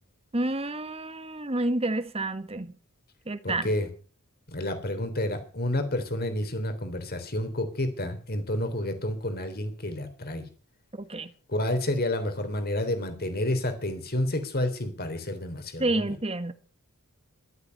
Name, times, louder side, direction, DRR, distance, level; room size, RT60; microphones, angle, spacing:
voice 1, 0.3-2.7 3.3-3.7 10.9-11.3 15.8-16.5, right 2 dB, 25° right, 1.5 m, -29 dB
voice 2, 3.4-3.9 4.5-10.5 11.5-16.1, left 1 dB, 45° left, 3.4 m, -30 dB
14.5 x 12.5 x 6.7 m
head